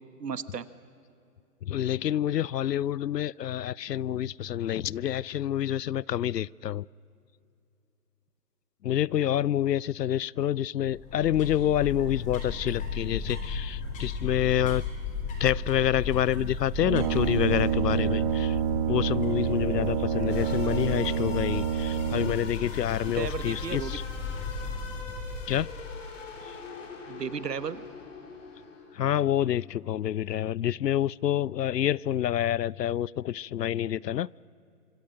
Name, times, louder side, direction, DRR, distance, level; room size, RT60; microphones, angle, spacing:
voice 1, 0.2-0.7 23.1-24.0 27.1-27.9, right 6 dB, 90° right, 1.4 m, -34 dB
voice 2, 1.6-6.9 8.8-14.8 15.4-18.6 18.9-24.0 25.5-25.7 26.5-26.6 28.9-34.3, left 11 dB, 90° left, 0.6 m, -27 dB
sound 1, 10.8-26.1, left 4 dB, 15° left, 3.8 m, -36 dB
Brass instrument, 16.8-22.6, right 9 dB, 20° right, 0.9 m, -28 dB
sound 2, 20.3-29.1, left 4 dB, 50° left, 4.2 m, -43 dB
26.0 x 25.5 x 6.4 m
hypercardioid pair, 150°, 47 cm